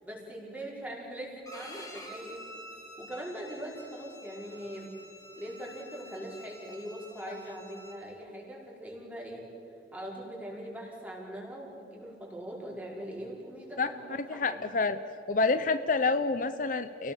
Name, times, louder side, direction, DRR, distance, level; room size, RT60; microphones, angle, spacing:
voice 1, 0.0-2.4 3.0-4.9 5.4-9.5 9.9-14.6, equal, 10° right, -3 dB, 5.2 m, -41 dB
Bowed string instrument, 1.5-8.0, equal, 20° left, 4.6 m, -49 dB
voice 2, 14.3-15.0 15.3-17.1, left 3 dB, 50° left, 11 dB, 0.7 m, -28 dB
29.5 x 18.0 x 7.1 m, 2.9 s
head